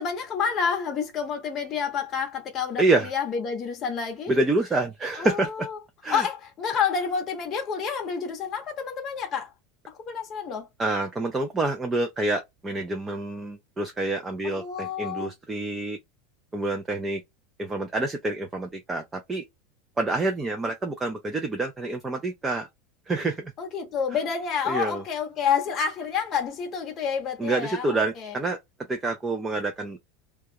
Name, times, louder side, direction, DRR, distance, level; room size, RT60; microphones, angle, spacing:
voice 1, 0.0-4.3 5.2-5.3 5.6-5.7 6.1-9.5 9.9-10.7 14.4-15.3 23.6-28.4, left 6 dB, 25° left, 0.8 m, -29 dB
voice 2, 2.8-3.1 4.3-5.7 6.0-6.3 10.8-16.0 16.5-17.2 17.6-19.5 20.0-22.7 23.1-23.5 24.7-25.0 27.4-28.6 28.9-30.0, right 2 dB, 10° right, 0.3 m, -27 dB
2.3 x 2.1 x 2.7 m
supercardioid pair, 180°, 0 cm